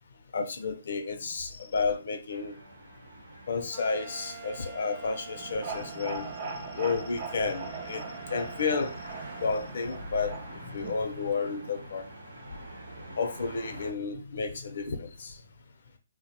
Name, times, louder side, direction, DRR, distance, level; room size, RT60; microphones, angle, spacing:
voice 1, 0.3-2.6 3.5-6.3 6.7-9.0 9.4-12.0 13.2-15.4, left 4 dB, 60° left, 0.4 m, -31 dB
sound 1, 2.3-13.9, right 1 dB, 80° right, 0.9 m, -47 dB
sound 2, 3.7-9.5, right 6 dB, 20° right, 0.8 m, -46 dB
sound 3, 5.3-11.4, right 4 dB, 40° right, 0.4 m, -41 dB
2.4 x 2.0 x 2.8 m
figure-of-eight pair, 140°, 0 cm